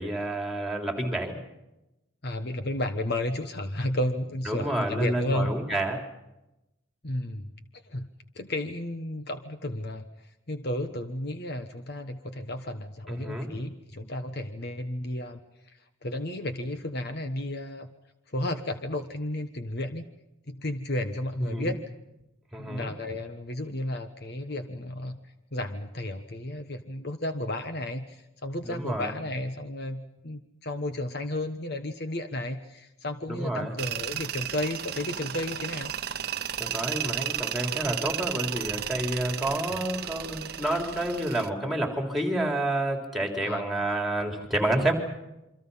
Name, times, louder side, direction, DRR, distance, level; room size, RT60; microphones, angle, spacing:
voice 1, 0.0-1.4 4.5-6.0 13.1-13.5 21.5-21.7 22.5-22.9 28.6-29.1 33.3-33.7 36.6-44.9, right 1 dB, ahead, 3 dB, 3.7 m, -29 dB
voice 2, 2.2-5.6 7.0-7.5 7.8-8.1 8.3-17.9 18.3-20.1 20.5-21.8 22.6-25.2 25.5-35.9 43.4-43.9, left 1 dB, 50° left, 8 dB, 1.3 m, -33 dB
Tools, 33.8-41.5, right 10 dB, 50° right, 0.8 m, -34 dB
28.0 x 24.5 x 5.7 m, 0.93 s
head